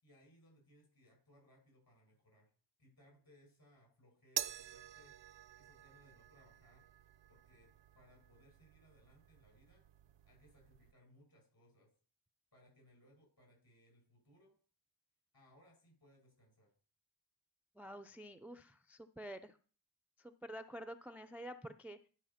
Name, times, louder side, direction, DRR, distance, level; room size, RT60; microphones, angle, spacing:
voice 1, 0.0-2.5 2.8-5.2 5.5-6.9 7.3-9.8 10.2-11.9 12.5-14.5 15.3-16.7, equal, 55° left, 1 dB, 6.3 m, -67 dB
sound 1, 4.4-10.9, right 11 dB, 80° right, 0.5 m, -48 dB
voice 2, 17.8-19.6 20.2-22.1, equal, 5° right, 9 dB, 0.3 m, -49 dB
11.5 x 4.9 x 5.7 m, 0.41 s
wide cardioid pair, 125°, 43 cm